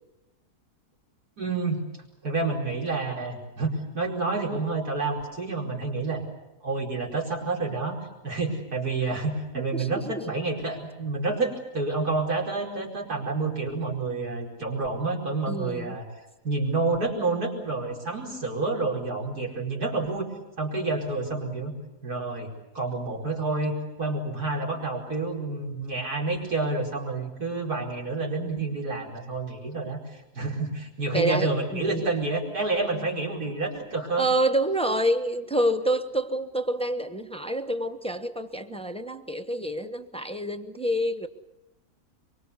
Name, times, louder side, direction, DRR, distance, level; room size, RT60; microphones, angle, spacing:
voice 1, 1.4-1.8 2.2-6.2 6.6-16.0 16.4-20.3 20.6-21.7 22.0-22.5 22.7-34.3, right 3 dB, 80° right, -2 dB, 5.4 m, -29 dB
voice 2, 9.5-10.1 15.5-16.0 31.1-32.1 34.2-41.3, right 1 dB, 5° left, 7 dB, 0.9 m, -27 dB
24.5 x 24.0 x 8.3 m, 0.94 s
omnidirectional pair, 1.6 m